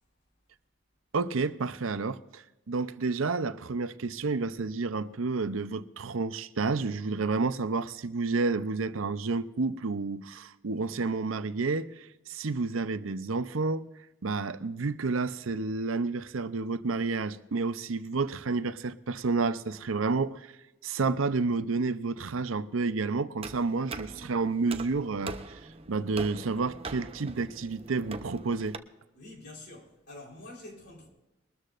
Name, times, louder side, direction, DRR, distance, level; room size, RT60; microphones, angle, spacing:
voice 1, 1.1-13.8 14.2-20.5 20.8-25.6 25.9-28.8, right 4 dB, 85° right, 0.7 m, -30 dB
sound 1, 23.4-28.8, right 3 dB, 30° right, 0.7 m, -42 dB
voice 2, 29.1-31.1, left 2 dB, 55° left, 4.0 m, -47 dB
22.5 x 13.0 x 2.5 m
head